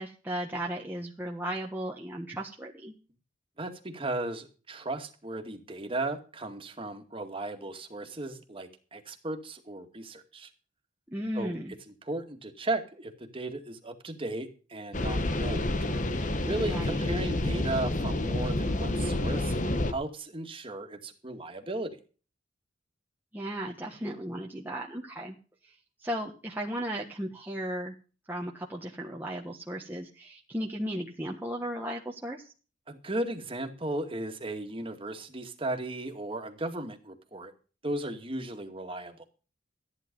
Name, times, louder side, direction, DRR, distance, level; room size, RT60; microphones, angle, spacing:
voice 1, 0.0-2.9 11.1-11.7 16.6-17.1 23.3-25.4 25.6-25.7 26.0-27.9 28.3-32.5, right 1 dB, 10° right, -2 dB, 1.4 m, -35 dB
voice 2, 3.6-10.5 11.3-11.5 12.0-15.8 16.5-19.5 19.9-22.0 32.9-37.5 37.8-39.2, right 2 dB, 30° right, 4 dB, 2.2 m, -36 dB
sound 1, 14.9-19.9, left 1 dB, 40° left, 1.2 m, -29 dB
15.0 x 10.0 x 5.4 m, 0.36 s
head